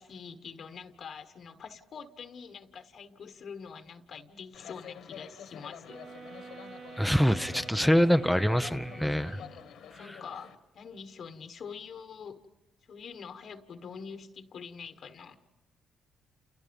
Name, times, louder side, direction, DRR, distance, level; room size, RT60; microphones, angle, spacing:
voice 1, 0.0-6.0 8.9-9.6 10.0-12.4 12.9-15.4, left 6 dB, 60° left, 8 dB, 1.4 m, -45 dB
sound 1, 4.5-10.5, left 8 dB, 75° left, 1.8 m, -48 dB
sound 2, 5.9-9.8, right 5 dB, 70° right, 1.6 m, -48 dB
voice 2, 7.0-9.4 9.9-10.2, equal, ahead, 10 dB, 0.8 m, -25 dB
29.5 x 29.5 x 5.3 m, 1.0 s
cardioid pair, 90°, 0 cm